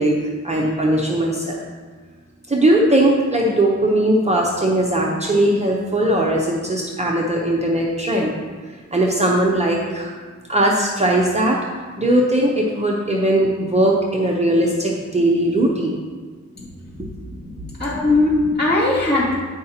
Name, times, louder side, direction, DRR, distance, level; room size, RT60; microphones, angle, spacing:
voice 1, 0.0-1.7 2.5-8.3 8.9-10.1 10.5-11.6 12.0-16.0 17.0-17.1, right 1 dB, 20° right, -2 dB, 0.7 m, -19 dB
voice 2, 17.3-19.3, left 2 dB, 35° left, -8 dB, 2.4 m, -20 dB
9.3 x 4.8 x 4.3 m, 1.5 s
wide cardioid pair, 170°, 30 cm